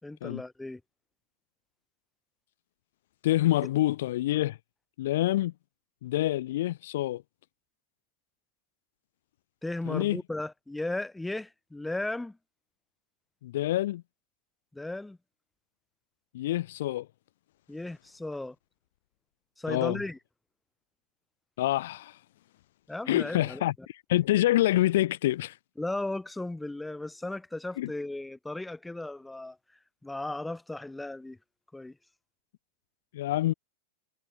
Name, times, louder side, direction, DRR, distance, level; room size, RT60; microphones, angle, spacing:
voice 1, 0.0-0.8 9.6-12.4 14.7-15.2 17.7-18.6 19.6-20.2 22.9-23.6 25.8-29.6 30.0-31.4 31.7-32.0, left 2 dB, 5° left, 3.8 m, -35 dB
voice 2, 3.2-4.6 5.0-5.5 6.0-7.2 9.9-10.2 13.4-14.0 16.3-17.1 19.7-20.0 21.6-22.2 23.1-25.6 27.8-27.9 33.1-33.5, left 15 dB, 70° left, 1.0 m, -27 dB
supercardioid pair, 145°, 0 cm